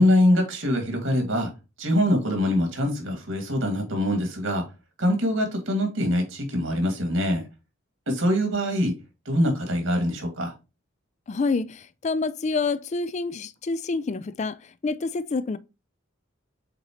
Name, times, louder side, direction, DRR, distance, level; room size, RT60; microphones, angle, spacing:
voice 1, 0.0-1.5 1.8-4.6 5.0-7.4 8.1-9.0 9.3-10.5, left 1 dB, 75° right, 2.3 m, -23 dB
voice 2, 11.3-15.6, left 3 dB, 35° left, 0.4 m, -28 dB
7.6 x 4.1 x 3.0 m
head